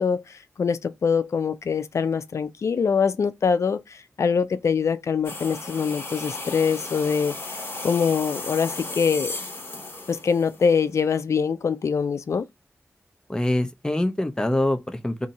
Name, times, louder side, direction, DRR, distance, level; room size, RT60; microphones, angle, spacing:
voice 1, 0.0-9.3 10.1-12.5, left 6 dB, 80° left, 0.4 m, -24 dB
sound 1, 5.2-11.0, left 2 dB, 55° left, 1.2 m, -35 dB
voice 2, 13.3-15.3, left 1 dB, 15° left, 0.6 m, -24 dB
2.7 x 2.7 x 4.0 m
wide cardioid pair, 110°, 5 cm